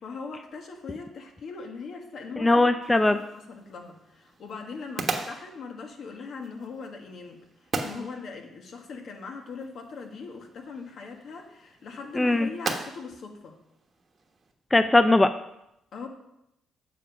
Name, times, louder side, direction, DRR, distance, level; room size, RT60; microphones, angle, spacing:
voice 1, 0.0-7.4 7.8-13.6 15.9-16.1, left 4 dB, 60° left, 3 dB, 1.5 m, -40 dB
voice 2, 2.4-3.2 12.2-12.5 14.7-15.3, left 2 dB, 15° left, 9 dB, 0.4 m, -20 dB
sound 1, 2.8-14.5, right 4 dB, 40° right, 1.2 m, -39 dB
7.6 x 6.9 x 5.4 m, 0.83 s
cardioid pair, 90°, 0 cm